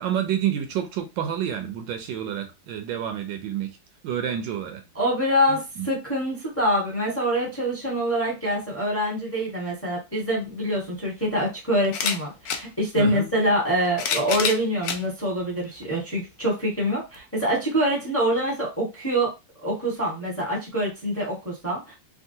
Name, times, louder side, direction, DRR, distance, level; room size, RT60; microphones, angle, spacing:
voice 1, 0.0-3.7 4.0-4.8 5.5-5.9 13.0-13.3, right 9 dB, 75° right, 1.2 m, -29 dB
voice 2, 4.9-19.3 19.6-21.9, equal, 10° left, 0.9 m, -25 dB
sound 1, 10.4-10.5 11.8-12.6 13.6-15.0 15.8-15.9 17.1-17.2, left 6 dB, 75° left, 0.8 m, -27 dB
3.6 x 2.3 x 2.7 m
omnidirectional pair, 2.1 m